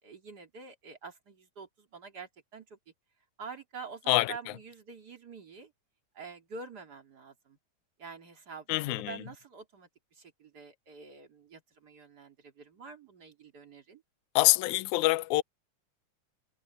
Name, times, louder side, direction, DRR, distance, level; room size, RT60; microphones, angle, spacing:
voice 1, 0.0-2.8 3.4-5.7 6.1-7.6 8.0-14.0, right 5 dB, 30° right, 2.8 m, -47 dB
voice 2, 8.7-9.2 14.4-15.4, left 21 dB, 75° left, 2.0 m, -25 dB
omnidirectional pair, 3.7 m